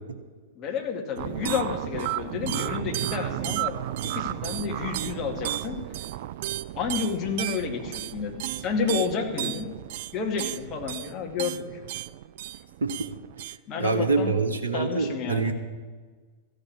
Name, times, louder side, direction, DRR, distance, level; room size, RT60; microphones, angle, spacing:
voice 1, 0.6-3.8 4.0-5.8 6.8-9.7 10.1-11.8 13.7-14.3 14.7-15.5, left 6 dB, 35° left, 2 dB, 2.3 m, -30 dB
sound 1, 1.2-13.6, right 14 dB, 55° right, 0.4 m, -33 dB
voice 2, 13.8-15.5, right 4 dB, 75° right, 6 dB, 1.1 m, -25 dB
14.0 x 6.6 x 9.7 m, 1.4 s
figure-of-eight pair, 100°, 0 cm